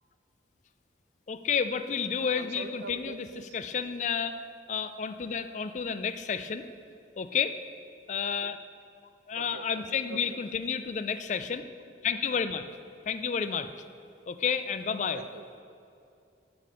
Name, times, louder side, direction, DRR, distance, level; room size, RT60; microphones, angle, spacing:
voice 1, 1.3-3.3 3.5-6.7 7.2-7.6 8.1-8.6 9.3-11.6 12.0-12.6 13.1-13.7 14.3-15.2, left 6 dB, 40° left, 11 dB, 0.3 m, -31 dB
voice 2, 2.2-3.6 3.9-4.0 9.3-10.4 15.1-15.6, right 3 dB, 75° right, 9 dB, 0.5 m, -44 dB
11.0 x 5.1 x 5.1 m, 2.5 s
head